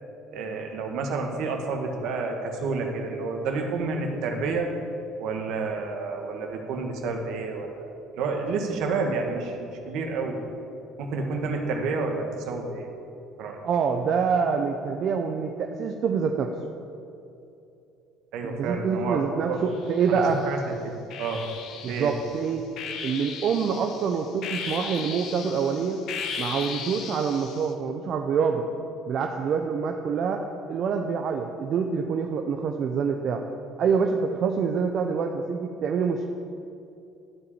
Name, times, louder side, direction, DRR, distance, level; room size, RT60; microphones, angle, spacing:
voice 1, 0.3-4.7 5.2-10.4 11.0-12.9 13.4-13.6 18.3-19.6 20.1-21.5 21.9-22.1, right 4 dB, 70° right, 2 dB, 1.7 m, -30 dB
voice 2, 13.6-16.5 18.4-20.4 21.8-22.6 23.0-26.0 26.4-28.7 29.1-33.4 33.8-36.3, right 6 dB, 55° right, 3 dB, 0.7 m, -26 dB
sound 1, 19.7-20.5 21.1-27.7, left 6 dB, 65° left, 1.1 m, -37 dB
12.5 x 4.9 x 8.7 m, 2.7 s
supercardioid pair, 85°, 0 cm